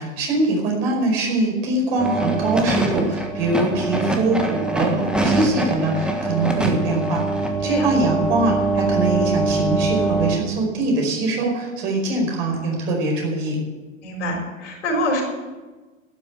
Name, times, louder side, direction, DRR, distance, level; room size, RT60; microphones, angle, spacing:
voice 1, 0.0-13.6, right 2 dB, 45° right, 0 dB, 5.1 m, -23 dB
sound 1, 2.0-10.4, right 2 dB, ahead, 1.5 m, -23 dB
voice 2, 14.0-15.2, left 1 dB, 60° left, 0 dB, 4.6 m, -25 dB
12.5 x 9.8 x 8.2 m, 1.2 s
figure-of-eight pair, 95°, 40 cm